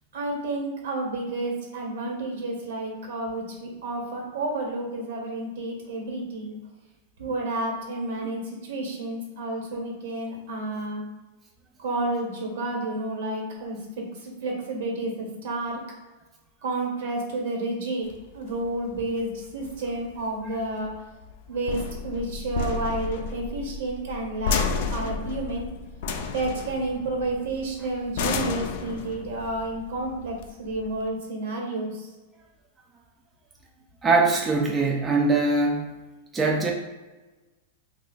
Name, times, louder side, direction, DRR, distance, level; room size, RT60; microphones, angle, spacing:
voice 1, 0.1-6.5 7.2-11.0 11.8-15.8 16.6-18.1 18.3-20.9 21.5-25.7 26.3-32.1, right 2 dB, 75° right, 0 dB, 1.2 m, -30 dB
sound 1, 18.1-31.1, left 5 dB, 60° left, 0.4 m, -32 dB
voice 2, 34.0-35.9 36.3-36.7, right 3 dB, 15° right, 0 dB, 0.4 m, -22 dB
2.8 x 2.4 x 3.9 m, 1.2 s
supercardioid pair, 140°, 0 cm